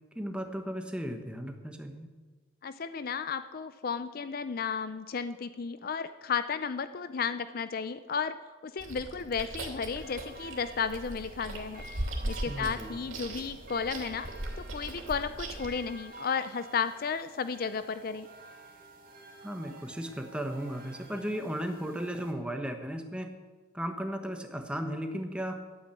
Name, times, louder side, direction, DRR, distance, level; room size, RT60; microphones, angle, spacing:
voice 1, 0.1-2.1 12.2-13.0 19.4-23.3 23.7-25.6, equal, 5° right, 5 dB, 1.2 m, -35 dB
voice 2, 2.6-8.4 8.6-11.9 12.3-14.3 14.6-18.3, left 6 dB, 50° left, 12 dB, 0.4 m, -33 dB
Chewing mastication, 8.8-15.7, right 1 dB, 90° right, 2.7 m, -39 dB
sound 1, 10.0-22.3, right 2 dB, 45° right, 2.0 m, -50 dB
12.0 x 9.1 x 8.4 m, 1.4 s
head